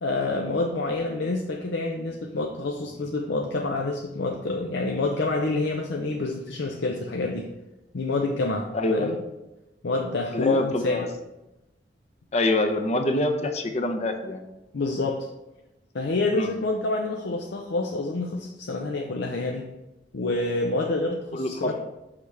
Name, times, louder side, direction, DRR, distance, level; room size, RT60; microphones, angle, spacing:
voice 1, 0.0-7.5 7.9-9.1 9.8-11.1 14.7-15.3 15.9-19.6 20.1-21.7, left 2 dB, 75° left, 2 dB, 0.6 m, -27 dB
voice 2, 8.7-9.2 10.3-11.1 12.3-14.4 16.3-16.5 21.3-21.7, left 2 dB, 40° left, 5 dB, 0.7 m, -25 dB
6.1 x 5.8 x 3.3 m, 0.97 s
head